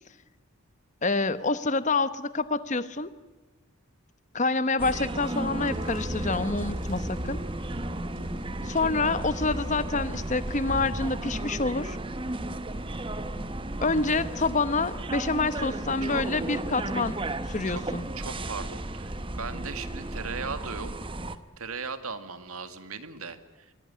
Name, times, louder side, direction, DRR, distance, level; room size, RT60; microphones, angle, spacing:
voice 1, 1.0-3.1 4.3-7.4 8.6-12.0 13.8-17.2 17.5-18.1, left 3 dB, 35° left, 14 dB, 1.0 m, -27 dB
sound 1, 4.8-21.4, right 1 dB, 25° right, 1.0 m, -34 dB
sound 2, 5.2-11.2, equal, 55° right, 4.1 m, -39 dB
voice 2, 18.2-23.7, right 5 dB, 80° right, 10 dB, 1.9 m, -38 dB
24.0 x 17.0 x 10.0 m, 1.2 s
head